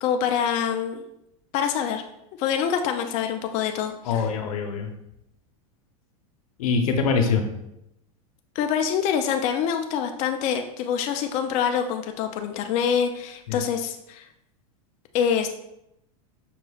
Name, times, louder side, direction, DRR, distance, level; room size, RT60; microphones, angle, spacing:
voice 1, 0.0-1.0 1.5-2.0 2.4-4.3 8.6-14.3 15.1-15.5, left 8 dB, 40° left, 5 dB, 0.4 m, -25 dB
voice 2, 4.0-4.9 6.6-7.5 13.5-13.6, left 5 dB, 80° left, 5 dB, 0.7 m, -23 dB
5.7 x 3.1 x 2.3 m, 0.84 s
supercardioid pair, 125°, 18 cm